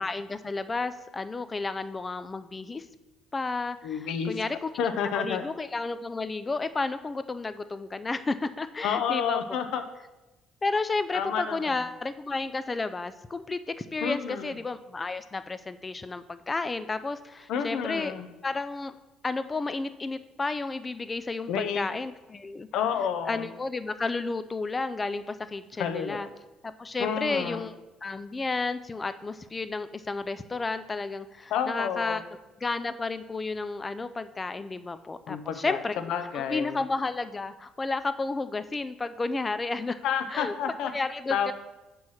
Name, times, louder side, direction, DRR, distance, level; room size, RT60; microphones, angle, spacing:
voice 1, 0.0-2.9 3.3-4.7 5.0-9.4 10.6-18.1 18.4-18.9 19.2-22.7 23.3-26.3 26.6-27.7 28.0-32.2 32.6-36.0 36.3-40.0 40.3-40.5 40.9-41.5, left 3 dB, 20° left, 12 dB, 0.3 m, -32 dB
voice 2, 3.8-4.4 4.8-5.4 8.8-9.8 11.1-11.8 14.0-14.5 17.5-18.3 21.5-21.8 22.7-23.5 25.8-26.3 27.0-27.6 31.5-32.2 35.3-35.8 36.1-36.8 40.0-40.9 41.3-41.5, left 7 dB, 70° left, 8 dB, 0.6 m, -29 dB
5.6 x 4.5 x 6.3 m, 1.0 s
cardioid pair, 140°, 0 cm